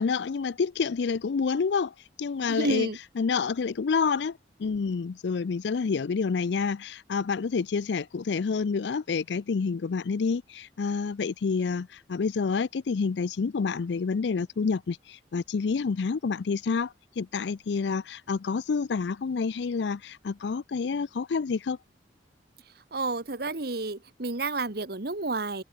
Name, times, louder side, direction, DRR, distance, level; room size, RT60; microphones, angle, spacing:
voice 1, 0.0-1.9 2.2-2.9 3.2-21.8, left 5 dB, 75° left, 0.4 m, -28 dB
voice 2, 2.5-3.0 22.9-25.6, right 2 dB, 60° right, 1.5 m, -30 dB
head